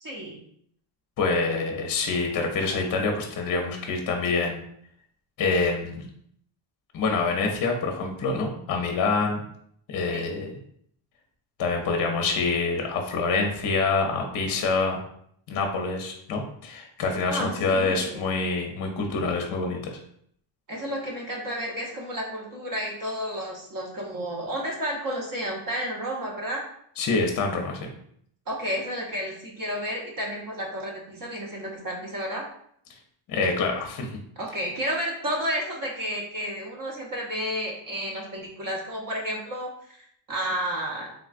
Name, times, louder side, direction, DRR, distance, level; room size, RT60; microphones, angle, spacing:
voice 1, 0.0-0.4 10.1-10.3 17.3-18.2 20.7-26.6 28.5-32.4 34.4-41.1, equal, 40° right, -2 dB, 0.9 m, -31 dB
voice 2, 1.2-4.6 5.4-6.1 6.9-9.4 9.9-10.5 11.6-15.0 15.5-20.0 27.0-27.9 33.3-34.1, left 4 dB, 45° left, 2 dB, 0.6 m, -26 dB
3.6 x 2.3 x 2.5 m, 0.67 s
cardioid pair, 100°, 50 cm